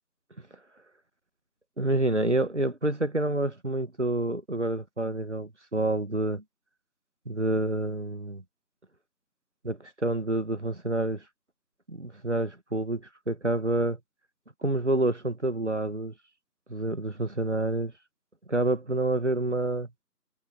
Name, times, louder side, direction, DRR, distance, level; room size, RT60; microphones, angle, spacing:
voice 1, 1.8-6.4 7.3-8.4 9.6-11.2 11.9-14.0 14.6-16.1 16.7-17.9 18.5-19.9, right 2 dB, 45° right, 2.0 m, -28 dB
figure-of-eight pair, 175°, 50 cm